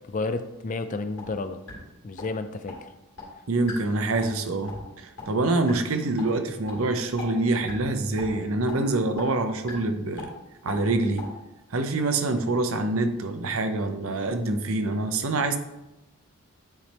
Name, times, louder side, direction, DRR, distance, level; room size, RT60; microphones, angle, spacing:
voice 1, 0.1-1.6 2.0-2.7, left 3 dB, 35° left, 10 dB, 0.4 m, -31 dB
sound 1, 1.2-1.3 1.7-1.8 2.2-2.3 2.7-2.8 3.2-3.3 3.7-3.8 4.2-4.4 4.7-4.8 5.2-5.3 5.7-5.8 6.2-6.3 6.7-6.8 7.2-7.3 7.7-7.9 8.2-8.3 8.7-8.8 9.2-9.3 9.7-9.8 10.2-10.3 10.7-10.8 11.2-11.3, left 3 dB, 65° left, 2.5 m, -38 dB
voice 2, 3.5-10.3 10.6-11.3 11.7-15.6, right 2 dB, 70° right, 8 dB, 0.7 m, -26 dB
9.0 x 3.4 x 4.2 m, 0.95 s
head